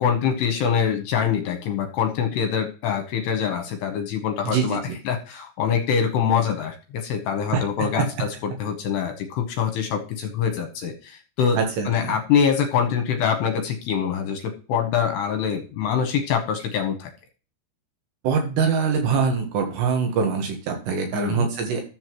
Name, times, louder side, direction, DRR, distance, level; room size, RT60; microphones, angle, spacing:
voice 1, 0.0-17.1 21.1-21.5, left 7 dB, 75° left, 6 dB, 2.9 m, -24 dB
voice 2, 4.4-4.8 8.0-8.1 11.6-12.1 18.2-21.8, right 5 dB, 75° right, 3 dB, 3.3 m, -23 dB
13.0 x 7.6 x 3.0 m, 0.36 s
omnidirectional pair, 5.1 m